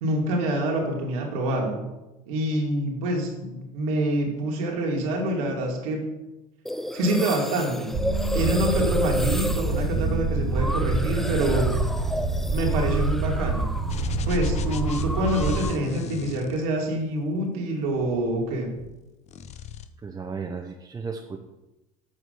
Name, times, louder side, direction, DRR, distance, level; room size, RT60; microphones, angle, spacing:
voice 1, 0.0-1.9 2.3-6.1 6.9-7.9 8.3-11.7 12.5-13.7 14.3-18.7, right 1 dB, 85° right, 0 dB, 2.5 m, -26 dB
sound 1, 6.7-14.1 14.3-15.9, equal, ahead, 0.4 m, -33 dB
sound 2, 7.9-15.6, right 3 dB, 50° right, 1.7 m, -26 dB
sound 3, 13.9-17.2 17.9-19.0 19.3-19.9, left 8 dB, 40° left, 0.7 m, -37 dB
voice 2, 20.0-21.4, right 5 dB, 20° right, 1 dB, 0.8 m, -34 dB
7.8 x 5.2 x 6.8 m, 1.0 s
supercardioid pair, 105°, 18 cm